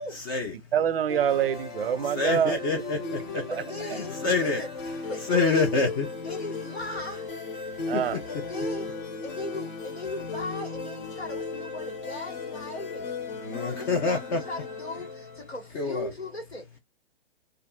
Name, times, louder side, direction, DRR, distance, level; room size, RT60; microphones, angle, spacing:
voice 1, 0.0-0.3 3.5-4.7 5.1-5.7 6.2-7.3 8.3-8.9 9.2-13.1 13.5-16.8, left 2 dB, 80° left, 1.3 m, -38 dB
voice 2, 0.7-2.6 3.5-3.6 7.9-8.2, right 9 dB, 65° right, 0.5 m, -25 dB
sound 1, 1.1-15.6, left 3 dB, 50° left, 1.2 m, -36 dB
voice 3, 2.1-3.5 3.9-4.6 5.3-6.1 7.9-8.2 13.4-14.4 15.7-16.1, left 3 dB, 25° left, 0.4 m, -27 dB
2.5 x 2.4 x 2.2 m
figure-of-eight pair, 120°, 31 cm